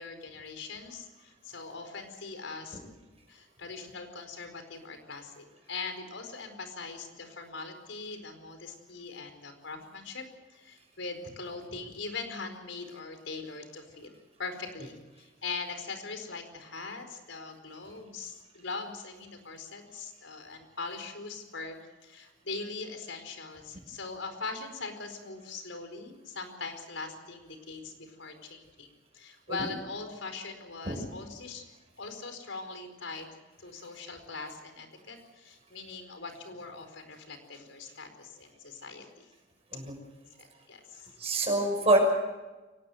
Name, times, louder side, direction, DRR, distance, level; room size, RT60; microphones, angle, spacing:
voice 1, 0.0-2.8 3.3-10.2 10.5-14.1 14.4-28.9 29.1-31.6 32.0-39.3 40.4-41.1, left 4 dB, 85° left, 6 dB, 4.6 m, -41 dB
voice 2, 41.2-42.0, right 2 dB, 30° right, 1 dB, 5.7 m, -25 dB
24.0 x 19.0 x 7.9 m, 1.2 s
head